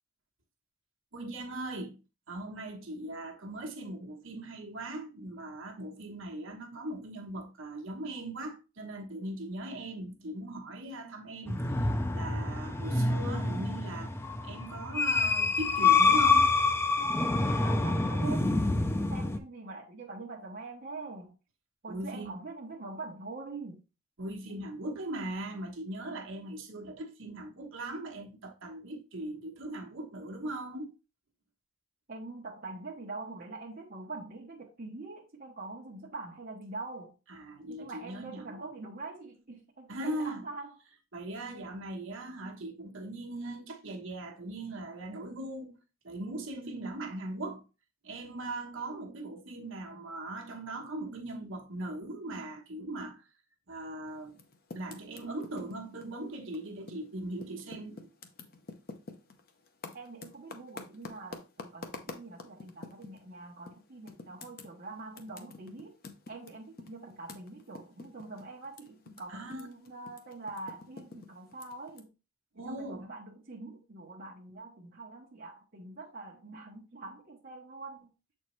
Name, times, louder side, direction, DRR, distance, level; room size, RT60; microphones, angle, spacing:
voice 1, 1.1-2.0 2.3-11.7 12.1-14.2 14.4-16.5 21.9-22.4 24.2-30.9 37.3-38.7 39.9-40.5 41.1-45.8 46.0-47.6 48.0-53.2 53.7-54.4 54.7-58.1 69.3-69.7 72.5-73.1, right 1 dB, 60° right, 1.2 m, -39 dB
sound 1, 11.5-19.4, left 3 dB, 10° left, 0.4 m, -27 dB
voice 2, 17.6-21.3 21.8-23.8 32.1-37.1 37.7-40.8 59.9-65.9 66.3-72.1 72.5-78.1, right 3 dB, 40° right, 1.0 m, -44 dB
Typing, 54.3-57.1 57.4-63.2 63.7-63.8 64.1-69.2 69.5-72.0, left 3 dB, 45° left, 0.7 m, -47 dB
7.0 x 4.4 x 3.1 m
head